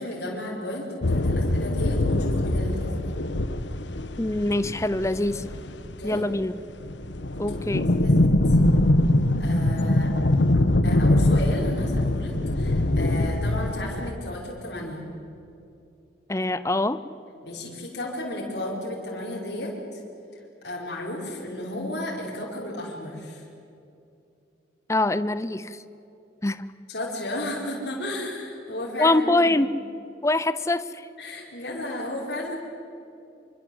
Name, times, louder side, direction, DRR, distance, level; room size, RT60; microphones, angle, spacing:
voice 1, 0.0-3.2 6.0-6.2 7.5-8.6 9.4-10.1 10.8-15.1 17.4-20.0 20.6-23.4 26.9-29.5 31.2-32.6, left 1 dB, 60° left, -4 dB, 5.2 m, -34 dB
sound 1, 1.0-6.4 6.7-14.1, left 1 dB, 75° left, 1.2 m, -23 dB
voice 2, 4.2-5.4 6.0-6.5 7.4-7.9 16.3-17.0 24.9-25.8 26.4-26.7 29.0-29.7 30.2-31.1, left 2 dB, 15° left, 14 dB, 0.7 m, -24 dB
26.0 x 25.0 x 8.0 m, 2.7 s
head